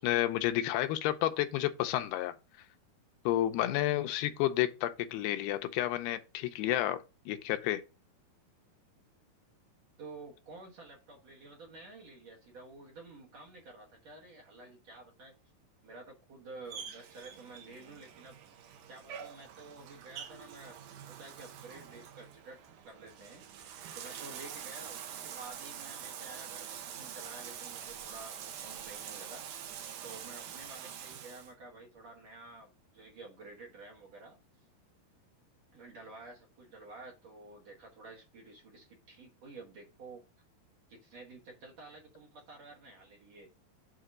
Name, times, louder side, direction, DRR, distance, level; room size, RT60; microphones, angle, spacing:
voice 1, 0.0-2.3 3.3-7.8, left 14 dB, 90° left, 2.7 m, -31 dB
voice 2, 10.0-15.4 15.8-18.4 18.9-23.4 24.0-29.5 30.0-34.7 35.7-40.2 40.9-43.5, right 3 dB, 60° right, 1.9 m, -51 dB
Bathtub (filling or washing), 16.7-31.5, right 9 dB, 75° right, 2.0 m, -45 dB
7.7 x 2.9 x 6.1 m
omnidirectional pair, 4.6 m